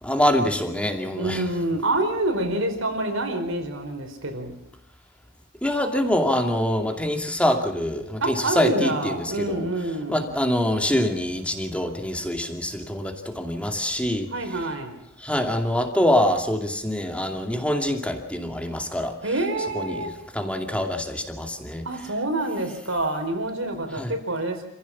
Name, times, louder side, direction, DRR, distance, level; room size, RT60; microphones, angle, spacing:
voice 1, 0.0-1.4 5.6-9.7 10.1-14.3 15.2-19.1 19.7-21.9 23.9-24.1, left 1 dB, 5° left, 4 dB, 2.5 m, -25 dB
voice 2, 1.2-4.5 8.2-10.2 14.3-15.0 19.2-20.1 21.8-24.7, right 2 dB, 80° right, 5 dB, 4.8 m, -27 dB
28.0 x 15.5 x 7.4 m, 0.80 s
head